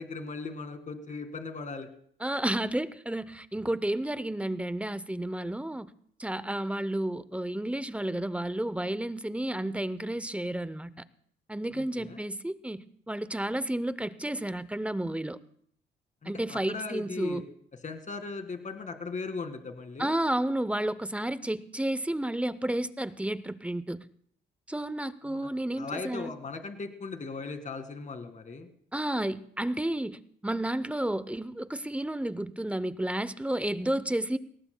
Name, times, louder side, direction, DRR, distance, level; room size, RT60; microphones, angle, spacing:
voice 1, 0.0-1.9 11.7-12.2 16.2-17.4 17.8-20.2 25.2-25.5 25.8-28.7, left 4 dB, 40° left, 7 dB, 2.0 m, -38 dB
voice 2, 2.2-5.9 6.2-10.9 11.5-15.4 16.3-17.4 20.0-24.0 24.7-26.3 28.9-34.4, right 1 dB, 5° right, 15 dB, 0.6 m, -31 dB
19.5 x 18.5 x 2.3 m, 0.62 s
cardioid pair, 90°, 20 cm